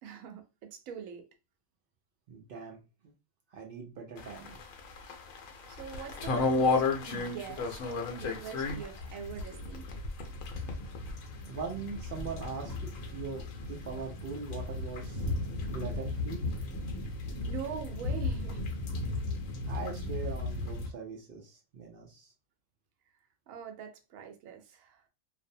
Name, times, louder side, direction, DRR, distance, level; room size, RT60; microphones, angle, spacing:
voice 1, 0.0-1.3 5.7-7.8 8.1-9.9 17.4-18.7 19.0-19.1 23.5-25.0, right 7 dB, 80° right, 1.0 m, -44 dB
voice 2, 2.3-2.8 3.5-4.6 11.5-15.2 15.7-16.4 19.6-22.3, right 5 dB, 60° right, 0.6 m, -41 dB
sound 1, 4.2-20.9, left 3 dB, 75° left, 1.0 m, -34 dB
2.5 x 2.0 x 2.6 m
omnidirectional pair, 1.4 m